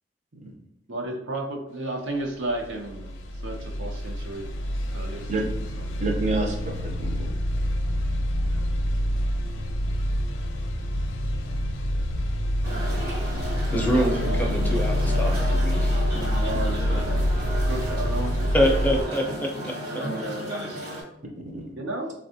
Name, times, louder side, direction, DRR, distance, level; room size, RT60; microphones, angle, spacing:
voice 1, 0.9-3.2 3.4-4.5 4.9-5.3 5.8-5.9 8.3-8.6 16.3-17.2 17.7-18.6 18.9-19.0 19.7-20.7 21.8-22.1, right 2 dB, 85° right, 1 dB, 0.7 m, -33 dB
sound 1, 2.5-19.0, equal, 80° left, 0.4 m, -26 dB
voice 2, 6.0-7.3 21.4-21.7, right 2 dB, 40° right, 1 dB, 0.6 m, -29 dB
sound 2, 12.6-21.0, equal, 60° right, 1.0 m, -33 dB
voice 3, 13.7-16.0 18.5-19.7, equal, 10° left, 0 dB, 0.5 m, -25 dB
3.6 x 2.3 x 2.7 m, 0.81 s
head